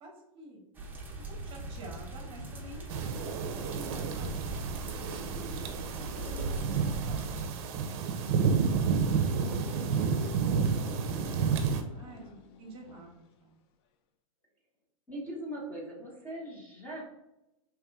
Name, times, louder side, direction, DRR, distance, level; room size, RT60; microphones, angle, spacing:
voice 1, 0.0-0.6 1.4-4.5 4.8-5.4 6.1-10.0 10.4-13.6, right 1 dB, 30° right, -1 dB, 1.1 m, -49 dB
sound 1, 0.8-7.5, right 2 dB, 10° right, 0.7 m, -40 dB
sound 2, 2.9-11.8, right 6 dB, 50° right, 0.6 m, -30 dB
sound 3, 9.3-13.4, left 7 dB, 45° left, 0.5 m, -48 dB
voice 2, 15.1-17.1, right 1 dB, 10° left, -4 dB, 1.1 m, -40 dB
3.5 x 3.0 x 3.5 m, 0.93 s
hypercardioid pair, 130°, 18 cm